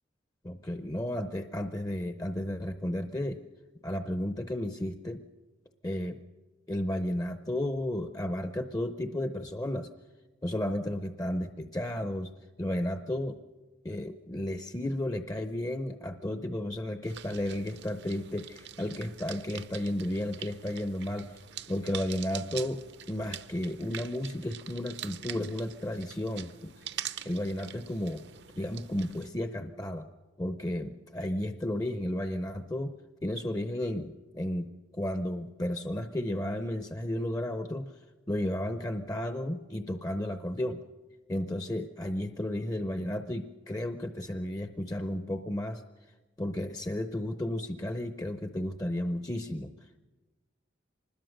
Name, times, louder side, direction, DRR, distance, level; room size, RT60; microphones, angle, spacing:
voice 1, 0.4-3.4 3.8-5.2 5.8-6.2 6.7-9.9 10.4-12.3 12.6-13.4 13.8-21.4 21.7-22.8 23.1-26.7 27.2-28.2 28.6-30.1 30.4-32.9 33.2-38.0 38.3-40.8 41.3-45.8 46.4-49.7, left 1 dB, 20° left, 8 dB, 0.6 m, -33 dB
sound 1, 17.0-29.3, right 10 dB, 60° right, 0.8 m, -44 dB
25.0 x 20.5 x 6.5 m, 1.2 s
head